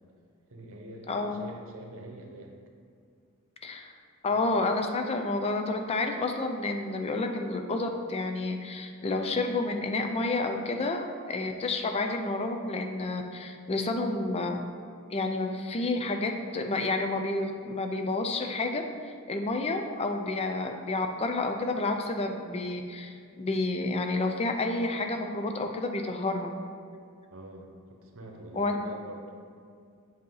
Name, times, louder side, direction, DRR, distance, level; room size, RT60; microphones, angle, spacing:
voice 1, 0.5-2.6 4.3-4.5 27.3-29.3, right 1 dB, 65° right, 1 dB, 0.9 m, -45 dB
voice 2, 1.1-1.4 3.6-3.9 4.2-14.6 15.1-18.8 19.3-26.5 28.6-28.8, left 2 dB, 25° left, 4 dB, 0.4 m, -30 dB
7.7 x 2.8 x 5.5 m, 2.3 s
head